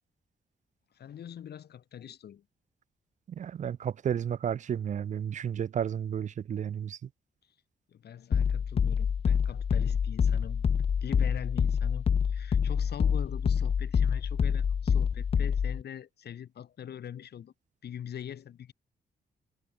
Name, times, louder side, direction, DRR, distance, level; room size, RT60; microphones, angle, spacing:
voice 1, 0.9-2.4 7.9-10.6 11.0-17.5 17.8-18.7, left 9 dB, 75° left, 4.7 m, -43 dB
voice 2, 3.3-7.0, right 8 dB, 45° right, 0.4 m, -32 dB
sound 1, 8.3-15.8, left 7 dB, 35° left, 0.4 m, -27 dB
wide cardioid pair, 125°, 17 cm